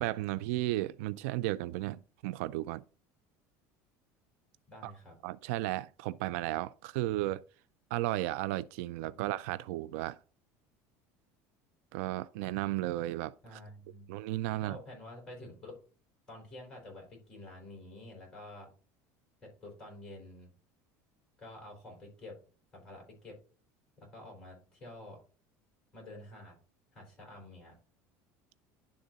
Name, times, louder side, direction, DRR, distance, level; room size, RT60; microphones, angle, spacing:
voice 1, 0.0-2.8 4.8-4.9 5.2-7.4 7.9-10.2 11.9-13.6 14.1-14.8, right 16 dB, 85° right, 0.4 m, -34 dB
voice 2, 4.7-5.1 9.1-9.2 13.4-14.1 14.5-15.7 16.3-18.7 19.4-20.5 21.4-22.4 22.7-23.4 24.0-25.2 25.9-26.5 26.9-27.7, left 1 dB, 10° left, 4.3 m, -49 dB
11.0 x 3.7 x 3.9 m
cardioid pair, 165°, 7 cm